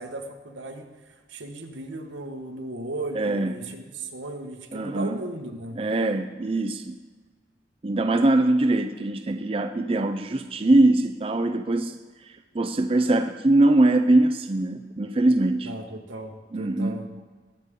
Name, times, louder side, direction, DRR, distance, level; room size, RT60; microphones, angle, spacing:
voice 1, 0.0-5.8 15.6-17.1, right 2 dB, 90° right, 3 dB, 1.5 m, -36 dB
voice 2, 3.1-3.5 4.7-5.1 5.8-7.0 7.8-12.0 12.3-15.7 16.5-17.0, right 2 dB, 30° right, 6 dB, 0.4 m, -22 dB
21.0 x 8.2 x 3.7 m, 1.4 s
head